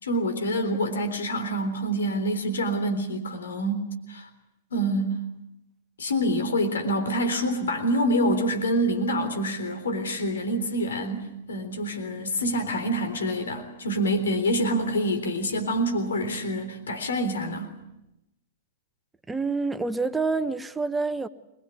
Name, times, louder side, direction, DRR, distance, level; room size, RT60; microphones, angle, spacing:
voice 1, 0.0-4.3 4.7-5.2 6.0-17.7, equal, 80° left, 3.7 m, -26 dB
voice 2, 19.3-21.3, right 4 dB, 10° right, 1.2 m, -27 dB
24.0 x 22.0 x 8.4 m
hypercardioid pair, 115°, 0 cm